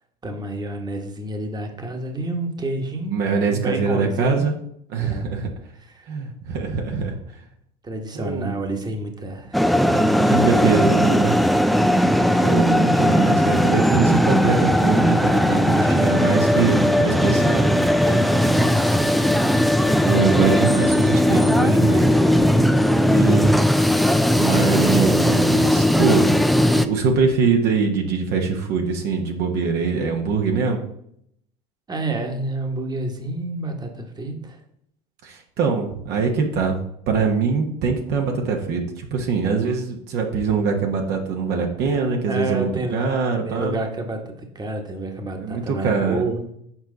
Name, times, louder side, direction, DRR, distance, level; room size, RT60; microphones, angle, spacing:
voice 1, 0.2-3.2 3.5-4.5 5.0-5.3 5.8-6.1 7.8-9.7 9.9-10.8 13.6-13.8 17.8-19.7 20.0-20.2 31.9-34.6 42.3-43.1 43.4-46.5, right 2 dB, 20° right, 3 dB, 1.3 m, -29 dB
voice 2, 3.1-4.5 4.9-5.5 6.1-7.2 8.1-8.5 10.3-11.4 12.4-17.8 20.1-22.2 23.1-23.5 24.4-30.8 35.2-36.8 37.1-43.8 45.4-46.2, right 5 dB, 60° right, 2 dB, 1.1 m, -23 dB
sound 1, 9.5-26.9, equal, ahead, 0.4 m, -18 dB
7.3 x 4.6 x 3.9 m, 0.71 s
hypercardioid pair, 75°, 19 cm